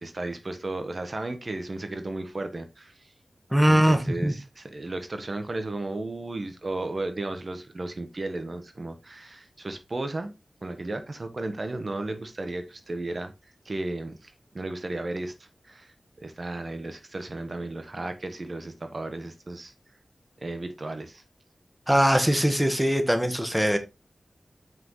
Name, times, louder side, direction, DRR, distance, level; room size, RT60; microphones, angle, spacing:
voice 1, 0.0-3.1 3.7-10.3 10.6-13.3 13.6-15.3 15.6-19.7 20.4-21.2, right 2 dB, 45° right, 1.2 m, -34 dB
voice 2, 3.5-4.3 21.9-23.8, equal, 5° right, 1.4 m, -21 dB
7.7 x 5.9 x 3.1 m
wide cardioid pair, 85°, 0 cm